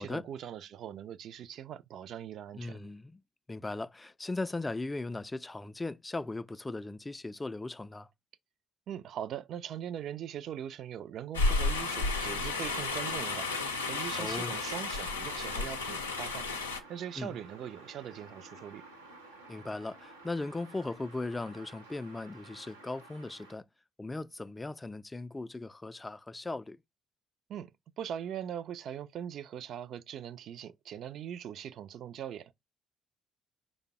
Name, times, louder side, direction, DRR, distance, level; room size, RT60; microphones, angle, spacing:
voice 1, 0.0-2.8 8.9-13.6 13.9-18.8 27.5-27.7 28.0-32.5, right 9 dB, 55° right, 0.4 m, -41 dB
voice 2, 2.5-3.2 3.5-8.1 14.1-14.5 17.2-17.4 19.5-23.7 24.0-26.8, left 2 dB, 20° left, 0.4 m, -38 dB
sound 1, 11.3-16.8, left 3 dB, 85° left, 0.5 m, -32 dB
sound 2, 12.8-23.5, right 2 dB, 85° right, 0.7 m, -53 dB
5.0 x 2.1 x 4.6 m
figure-of-eight pair, 45°, 0 cm